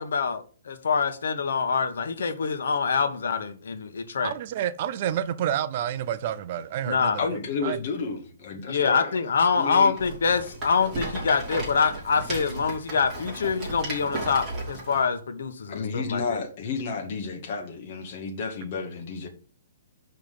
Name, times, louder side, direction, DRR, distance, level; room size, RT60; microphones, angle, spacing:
voice 1, 0.0-4.3 6.8-7.3 8.7-16.4, left 5 dB, 80° left, 1.3 m, -25 dB
voice 2, 4.2-7.1 7.6-7.8, right 10 dB, 35° right, 0.5 m, -29 dB
voice 3, 7.2-9.1 9.5-9.9 15.7-19.3, left 4 dB, 40° left, 1.7 m, -31 dB
Rattle, 9.9-15.0, right 2 dB, 10° right, 3.4 m, -35 dB
5.9 x 5.6 x 6.9 m
hypercardioid pair, 170°, 0 cm